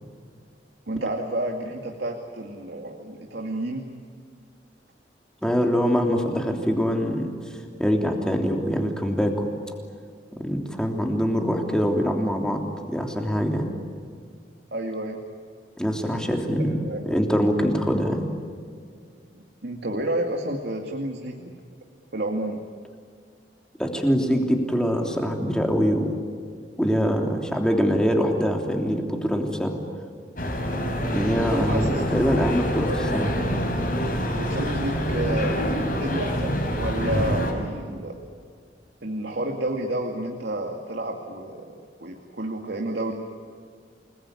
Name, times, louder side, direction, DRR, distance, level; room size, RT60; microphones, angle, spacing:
voice 1, 0.9-3.9 14.7-15.2 16.7-17.0 19.3-21.5 22.1-22.6 31.5-32.0 34.3-38.2 39.0-43.1, right 1 dB, 65° right, 2 dB, 2.3 m, -30 dB
voice 2, 5.4-7.3 7.8-9.3 10.4-13.7 15.8-16.8 17.0-18.2 23.8-26.1 26.8-29.8 31.1-33.3, equal, 5° left, 2 dB, 3.2 m, -24 dB
sound 1, 30.4-37.5, equal, 50° left, 6.0 m, -26 dB
29.0 x 20.5 x 9.7 m, 2.1 s
head